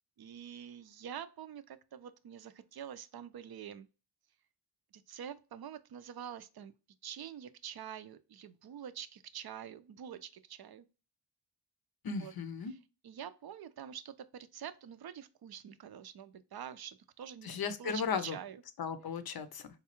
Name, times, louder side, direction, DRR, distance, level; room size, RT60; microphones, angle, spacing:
voice 1, 0.2-3.9 4.9-6.7 7.0-10.9 12.2-12.3 12.7-12.8 13.0-18.6, right 9 dB, 55° right, 0.5 m, -46 dB
voice 2, 12.0-12.7 17.4-18.4 18.8-19.7, left 6 dB, 50° left, 0.6 m, -36 dB
4.0 x 2.3 x 2.9 m
cardioid pair, 45°, 46 cm